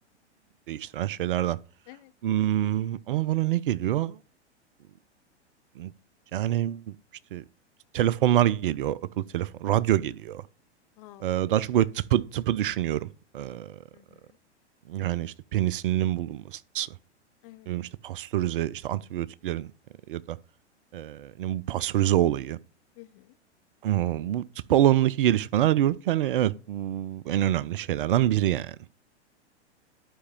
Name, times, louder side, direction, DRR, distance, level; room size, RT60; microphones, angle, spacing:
voice 1, 0.7-1.6 2.2-4.2 5.8-5.9 6.3-6.8 7.3-7.4 7.9-9.0 9.3-10.4 11.2-13.1 13.3-13.8 14.9-16.9 17.7-19.7 20.1-20.4 20.9-22.6 23.8-24.4 24.7-28.8, right 12 dB, 50° right, 0.5 m, -26 dB
voice 2, 11.0-11.6 13.9-14.4 17.4-17.7 23.0-23.4, left 17 dB, 30° left, 0.5 m, -51 dB
11.5 x 5.3 x 3.6 m
figure-of-eight pair, 100°, 35 cm